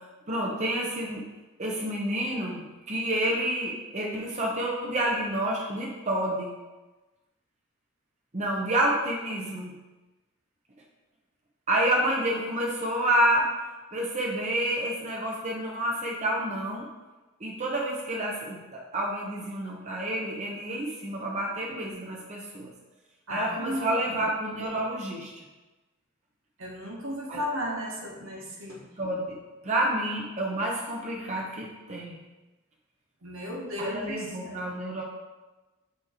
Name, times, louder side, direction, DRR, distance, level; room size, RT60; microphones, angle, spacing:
voice 1, 0.3-1.2 1.6-6.5 8.3-9.7 11.7-13.5 13.9-16.9 17.4-22.7 23.3-25.4 27.3-27.4 29.0-29.3 29.6-32.2 33.8-35.0, right 1 dB, 35° right, -3 dB, 0.8 m, -29 dB
voice 2, 23.3-23.9 26.6-28.8 33.2-34.2 34.4-34.7, equal, 65° right, -2 dB, 1.3 m, -34 dB
7.0 x 3.1 x 4.2 m, 1.1 s
head